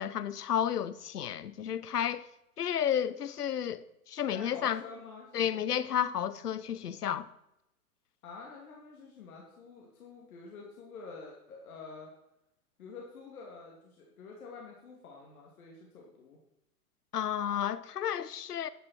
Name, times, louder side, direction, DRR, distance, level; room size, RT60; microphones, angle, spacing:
voice 1, 0.0-2.2 2.6-4.8 5.3-7.3 17.1-18.7, left 9 dB, 80° left, 0.8 m, -32 dB
voice 2, 4.3-5.5 8.2-12.1 12.8-16.4, left 4 dB, 65° left, 2.7 m, -48 dB
10.5 x 10.5 x 4.3 m
hypercardioid pair, 110°, 46 cm